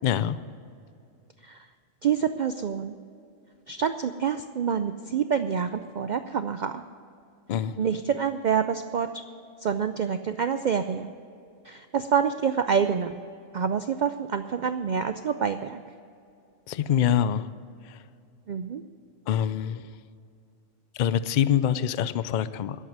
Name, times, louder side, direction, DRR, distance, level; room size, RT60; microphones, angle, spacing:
voice 1, 0.0-0.3 7.5-7.7 16.7-17.5 19.3-19.9 21.0-22.8, left 9 dB, 85° left, 15 dB, 0.4 m, -25 dB
voice 2, 2.0-2.9 3.7-6.8 7.8-9.1 9.6-11.1 11.7-13.1 13.5-15.8 18.5-18.8, right 7 dB, 80° right, 9 dB, 0.4 m, -27 dB
10.5 x 8.3 x 9.3 m, 2.5 s
omnidirectional pair, 1.3 m